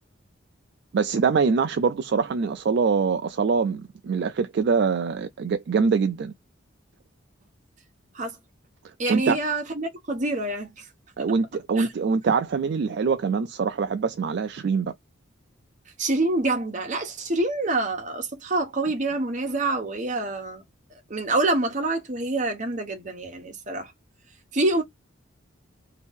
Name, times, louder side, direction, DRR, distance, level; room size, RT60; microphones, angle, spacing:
voice 1, 0.9-6.3 9.1-9.4 11.2-14.9, right 5 dB, 55° right, 0.3 m, -24 dB
voice 2, 9.0-10.8 11.8-11.9 16.0-20.6 21.1-23.9 24.5-24.8, right 2 dB, 40° right, 0.9 m, -26 dB
2.8 x 2.6 x 3.5 m
head